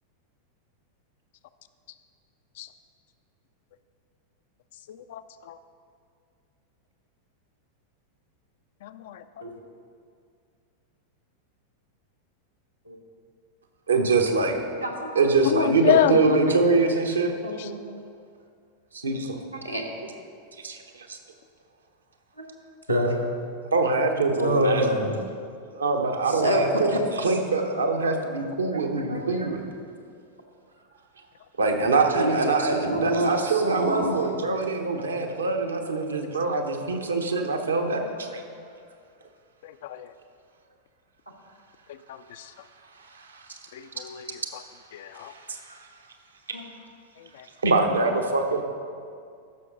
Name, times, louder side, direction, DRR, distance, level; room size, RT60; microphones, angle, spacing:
voice 1, 4.9-5.2 5.5-5.6 8.8-9.2 15.4-16.2 39.6-40.1 42.1-42.5 43.7-44.3 44.9-45.3 47.4-47.5, left 12 dB, 55° left, 11 dB, 0.4 m, -27 dB
voice 2, 13.9-14.6 15.1-17.3 18.9-19.4 20.6-21.2 23.7-25.0 25.7-29.6 31.6-38.4 43.0-43.6 45.2-45.9 47.6-48.6, right 3 dB, 75° right, 3 dB, 1.0 m, -24 dB
voice 3, 14.8-15.2 16.1-16.6 17.4-17.8 19.6-19.8 22.4-22.5 22.9-23.2 24.2-25.1 26.3-27.0 28.7-29.5 32.1-34.2 38.0-38.1 46.5-46.6, equal, 90° right, -2 dB, 1.4 m, -26 dB
14.0 x 6.5 x 3.8 m, 2.3 s
figure-of-eight pair, 90°, 0 cm